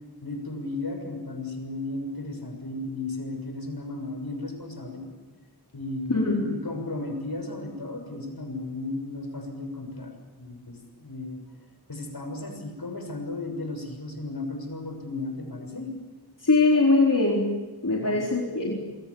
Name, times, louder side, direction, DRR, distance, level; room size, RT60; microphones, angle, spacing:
voice 1, 0.2-5.0 5.7-10.1 10.4-11.4 11.9-15.9 18.0-18.2, left 2 dB, 65° left, 5 dB, 6.6 m, -35 dB
voice 2, 6.1-6.4 16.4-17.5 17.8-18.8, left 3 dB, 50° left, -2 dB, 4.1 m, -21 dB
28.0 x 23.5 x 7.1 m, 1.2 s
wide cardioid pair, 60°, 39 cm